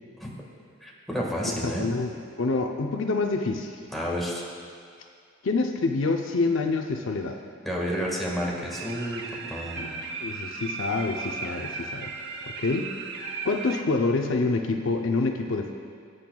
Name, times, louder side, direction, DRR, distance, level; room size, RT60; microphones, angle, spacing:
voice 1, 0.8-1.9 3.9-4.4 7.6-9.2 9.5-10.0, equal, ahead, -4 dB, 1.6 m, -30 dB
voice 2, 1.5-3.8 5.4-7.4 9.8-9.9 10.2-12.1 12.6-12.9 13.4-15.7, left 3 dB, 60° left, 3 dB, 0.6 m, -27 dB
sound 1, 8.7-13.8, right 4 dB, 55° right, 0.8 m, -36 dB
20.5 x 8.6 x 2.3 m, 2.2 s
head